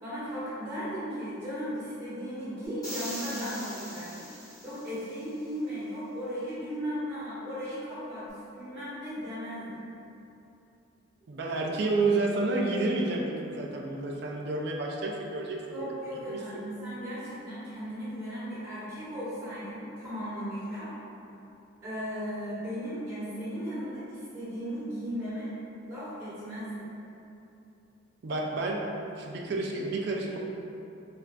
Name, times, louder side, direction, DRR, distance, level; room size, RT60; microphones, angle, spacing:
voice 1, 0.0-4.3 4.6-9.9 15.7-20.9 21.8-25.5 25.8-27.0, equal, 25° right, -16 dB, 1.2 m, -36 dB
sound 1, 2.8-5.1, equal, 20° left, 0.8 m, -41 dB
voice 2, 11.3-16.4 28.2-28.8 29.2-30.4, right 2 dB, 50° right, 0 dB, 0.4 m, -30 dB
4.2 x 2.4 x 2.3 m, 2.8 s
head